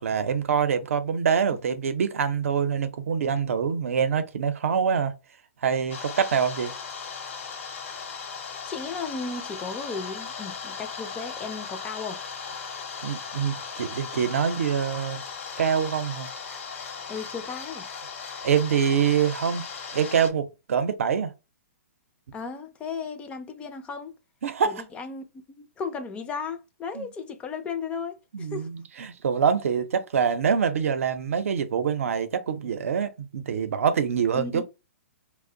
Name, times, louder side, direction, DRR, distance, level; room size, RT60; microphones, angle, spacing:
voice 1, 0.0-5.1 5.6-6.7 13.0-15.2 15.6-16.3 18.4-19.7 19.9-21.3 24.4-24.8 26.9-27.1 28.3-34.7, right 7 dB, 75° right, 0.6 m, -25 dB
sound 1, 5.9-20.3, left 5 dB, 65° left, 0.8 m, -37 dB
voice 2, 8.6-12.2 17.1-17.9 22.3-24.1 24.6-25.2 25.6-28.7 34.4-34.7, left 5 dB, 15° left, 0.4 m, -35 dB
2.5 x 2.1 x 3.7 m
hypercardioid pair, 140°, 7 cm